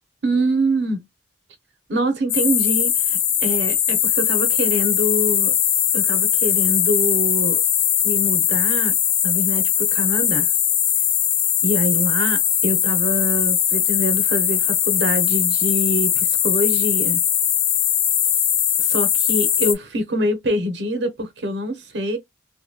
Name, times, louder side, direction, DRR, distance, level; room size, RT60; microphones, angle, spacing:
voice 1, 0.2-1.0 1.9-5.5 5.9-7.6 8.0-9.0 9.2-10.5 11.6-17.2 18.8-22.2, equal, 80° right, 0.9 m, -25 dB
sound 1, 2.3-19.7, left 9 dB, 55° left, 0.6 m, -20 dB
3.0 x 2.7 x 2.2 m
head